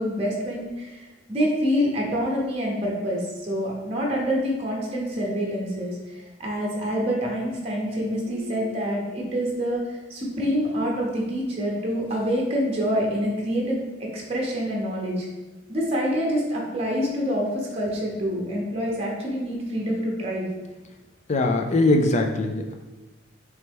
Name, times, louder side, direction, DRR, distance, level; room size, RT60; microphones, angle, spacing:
voice 1, 0.0-6.0 6.4-15.3 15.7-20.5, equal, 30° right, -2 dB, 0.8 m, -26 dB
voice 2, 21.3-22.7, left 2 dB, 35° left, 4 dB, 0.4 m, -21 dB
4.3 x 3.1 x 3.4 m, 1.1 s
head